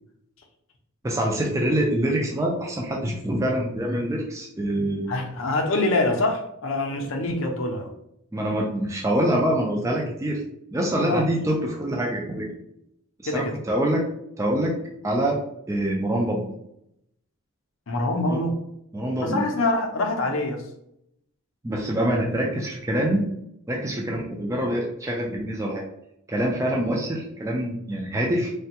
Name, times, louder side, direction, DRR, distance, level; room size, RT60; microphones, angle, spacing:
voice 1, 1.0-5.1 8.3-10.4 10.7-12.5 13.2-14.0 14.4-14.7 15.0-15.4 15.7-16.5 18.3-18.4 18.9-19.5 21.6-23.3 23.7-25.8 26.3-28.5, right 1 dB, 15° right, -1 dB, 0.3 m, -25 dB
voice 2, 5.1-7.9 11.0-11.3 13.3-13.6 17.9-18.5 19.2-20.7, left 2 dB, 60° left, 3 dB, 0.5 m, -25 dB
3.3 x 2.2 x 2.8 m, 0.77 s
head